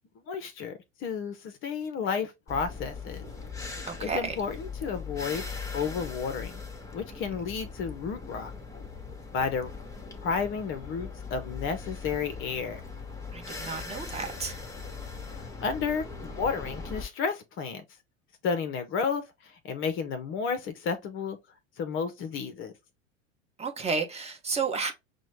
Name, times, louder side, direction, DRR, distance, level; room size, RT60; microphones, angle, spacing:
voice 1, 0.3-3.2 3.7-5.5 5.7-6.6 6.9-8.5 9.3-9.7 10.2-12.8 15.3-16.0 16.3-17.8 18.4-21.4 21.8-22.7, left 6 dB, 35° left, 0.6 m, -32 dB
sound 1, 2.5-17.0, left 4 dB, 10° left, 1.1 m, -40 dB
voice 2, 3.9-4.3 13.3-14.6 23.6-24.9, right 4 dB, 15° right, 0.9 m, -32 dB
6.1 x 2.2 x 3.0 m
figure-of-eight pair, 85°, 38 cm